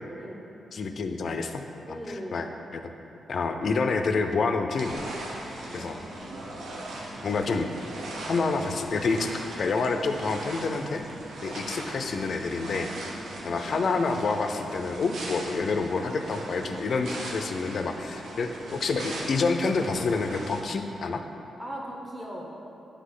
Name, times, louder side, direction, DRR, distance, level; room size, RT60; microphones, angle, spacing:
voice 1, 0.7-1.6 1.9-2.5 2.7-2.8 3.3-5.1 5.7-6.0 7.2-7.7 8.3-11.0 11.4-12.9 13.4-21.2, left 4 dB, 50° left, 6 dB, 0.4 m, -28 dB
voice 2, 1.9-2.4 5.6-6.5 21.6-22.5, equal, 15° right, -2 dB, 0.8 m, -39 dB
sound 1, 4.8-20.6, right 1 dB, 80° right, 0.8 m, -39 dB
9.4 x 3.3 x 3.7 m, 2.9 s
wide cardioid pair, 145°, 0 cm